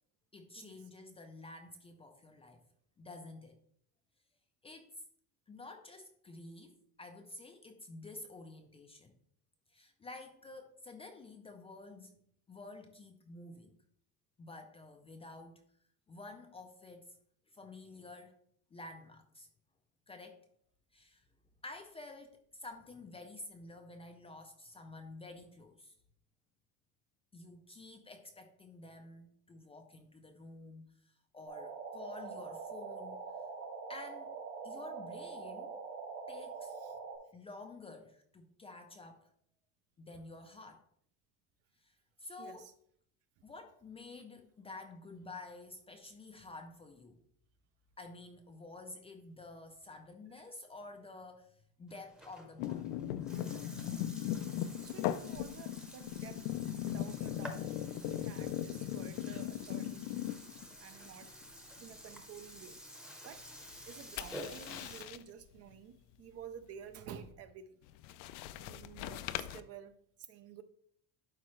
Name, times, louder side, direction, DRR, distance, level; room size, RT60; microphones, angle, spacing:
voice 1, 0.3-2.6 3.0-3.6 4.6-5.0 5.5-9.1 9.7-12.1 12.5-13.8 14.4-15.6 16.1-17.2 17.5-18.3 18.7-19.5 20.1-20.4 20.9-21.2 21.6-25.9 27.3-33.2 33.9-34.4 34.6-35.7 36.3-36.7 37.3-39.3 40.0-40.9 41.8-42.7 43.4-47.2 48.0-52.9, left 2 dB, 15° left, 0.4 m, -50 dB
sound 1, 31.5-37.2, right 5 dB, 75° right, 2.8 m, -44 dB
voice 2, 42.4-42.7 50.4-50.5 54.8-56.4 56.8-57.7 58.0-60.1 60.8-61.3 61.8-62.8 63.2-63.4 63.9-67.8 68.6-69.9 70.3-70.6, right 8 dB, 35° right, 0.5 m, -51 dB
Burping eructation, 51.9-65.0, equal, ahead, 0.8 m, -51 dB
sound 2, 52.6-60.7 61.1-61.4 63.7-65.2 67.9-69.6, left 12 dB, 75° left, 0.6 m, -38 dB
11.5 x 4.7 x 3.1 m
cardioid pair, 160°, 41 cm